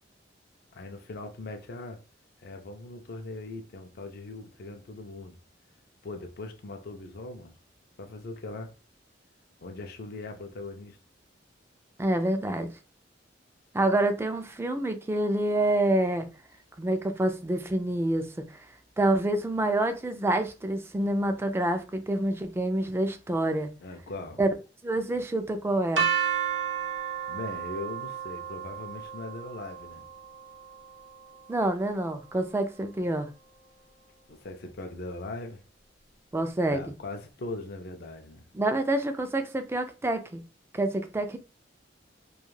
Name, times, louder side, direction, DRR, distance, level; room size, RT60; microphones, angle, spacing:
voice 1, 0.7-2.0 2.4-5.3 6.0-7.5 8.0-8.7 9.6-11.0 23.8-24.4 27.3-30.0 34.3-35.6 36.7-38.5, left 2 dB, 55° left, 0.4 m, -40 dB
voice 2, 12.0-12.7 13.7-16.3 16.8-18.3 19.0-23.7 24.4-24.5 24.8-26.1 31.5-33.3 36.3-36.9 38.5-40.4 40.7-41.4, right 1 dB, 15° right, 0.3 m, -27 dB
sound 1, 26.0-31.9, right 8 dB, 85° right, 0.7 m, -33 dB
2.4 x 2.3 x 3.1 m
head